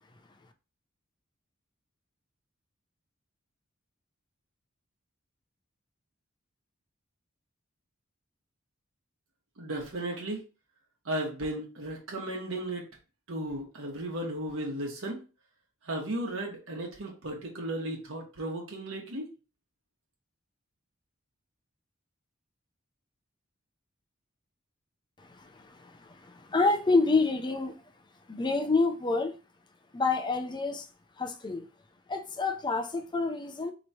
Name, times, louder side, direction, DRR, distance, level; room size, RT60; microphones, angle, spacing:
voice 1, 9.6-10.4 11.0-12.8 13.3-15.2 15.8-19.3, right 1 dB, 80° right, 1.1 m, -35 dB
voice 2, 25.3-27.8 28.3-29.4 29.9-30.9 31.2-31.6 32.1-33.7, left 3 dB, 20° left, 0.5 m, -28 dB
4.5 x 3.0 x 2.7 m
head